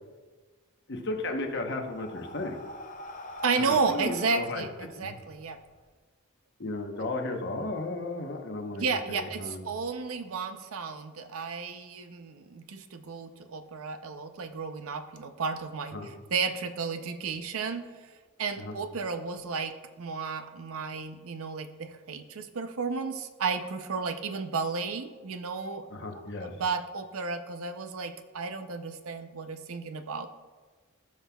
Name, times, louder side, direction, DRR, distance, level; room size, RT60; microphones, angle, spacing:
voice 1, 0.9-2.6 3.9-4.7 5.0-5.2 6.6-9.7 15.9-16.1 18.6-18.7 25.9-26.6, left 2 dB, 50° left, 3 dB, 1.0 m, -34 dB
Breathing, 1.1-5.8, left 1 dB, 35° left, 0.6 m, -44 dB
voice 2, 3.4-5.6 8.8-16.0 16.3-18.1 18.4-25.9 26.4-30.3, right 4 dB, 70° right, 8 dB, 0.6 m, -33 dB
15.0 x 6.0 x 2.3 m, 1.4 s
head